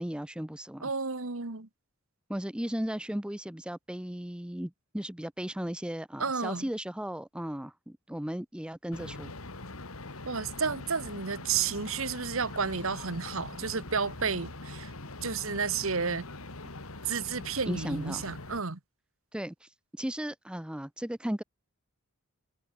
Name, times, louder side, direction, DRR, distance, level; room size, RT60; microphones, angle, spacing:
voice 1, 0.0-0.9 2.3-9.3 17.7-18.2 19.3-19.7 20.0-21.4, equal, 5° right, 0.5 m, -36 dB
voice 2, 0.8-1.7 6.2-6.6 10.2-14.9 15.2-16.3 17.0-18.8, right 5 dB, 70° right, 1.6 m, -31 dB
sound 1, 8.9-18.6, left 2 dB, 85° left, 2.7 m, -43 dB
head